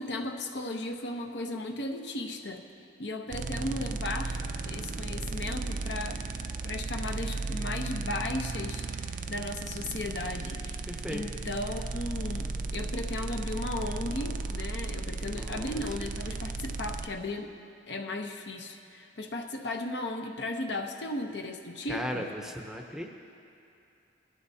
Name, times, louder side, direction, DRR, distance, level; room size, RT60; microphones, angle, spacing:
voice 1, 0.0-2.6 3.0-6.2 6.6-17.5 17.9-22.3, left 2 dB, 65° left, 4 dB, 0.8 m, -36 dB
sound 1, 3.3-17.1, right 3 dB, 45° right, 0.4 m, -35 dB
voice 2, 10.8-11.2 15.2-15.8 21.9-23.1, equal, 5° right, 1 dB, 0.7 m, -37 dB
20.0 x 13.0 x 2.8 m, 2.7 s
head